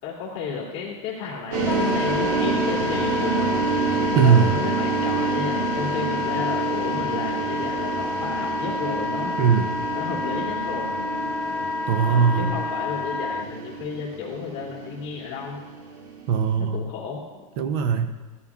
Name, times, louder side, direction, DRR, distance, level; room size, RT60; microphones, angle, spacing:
voice 1, 0.0-3.8 4.2-9.4 9.9-10.9 11.9-15.6 16.6-17.5, left 5 dB, 40° left, -4 dB, 2.5 m, -33 dB
sound 1, 1.5-16.5, right 4 dB, 85° right, 2.5 m, -28 dB
Wind instrument woodwind instrument, 1.7-13.5, left 3 dB, 15° left, 0.5 m, -29 dB
voice 2, 4.1-4.5 9.4-9.7 11.9-12.5 16.3-16.8 17.6-18.1, right 6 dB, 45° right, 9 dB, 0.6 m, -19 dB
15.5 x 11.0 x 2.4 m, 1.3 s
supercardioid pair, 170°, 17 cm